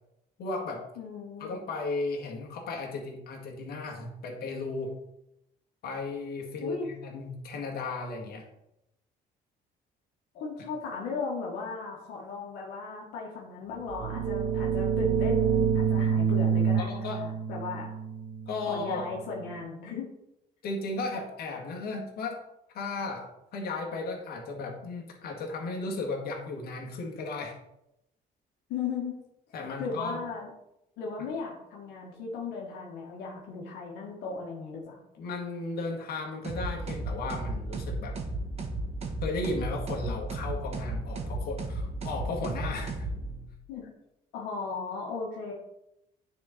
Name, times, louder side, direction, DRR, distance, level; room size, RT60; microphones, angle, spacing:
voice 1, 0.4-0.9 1.4-4.9 5.8-8.5 16.8-17.2 18.5-19.0 20.6-22.4 22.7-27.6 29.5-30.2 35.2-38.2 39.2-43.1, left 3 dB, 65° left, 0 dB, 2.0 m, -35 dB
voice 2, 1.0-1.6 6.6-6.9 10.3-17.9 18.7-20.1 28.7-29.2 29.8-30.5 31.0-35.0 43.7-43.9 44.3-45.5, left 4 dB, 90° left, -2 dB, 1.6 m, -36 dB
sound 1, 13.8-19.4, right 7 dB, 60° right, 0.9 m, -28 dB
sound 2, 36.4-43.6, right 2 dB, 35° right, 1.6 m, -34 dB
9.6 x 4.4 x 4.3 m, 0.85 s
cardioid pair, 110°, 17 cm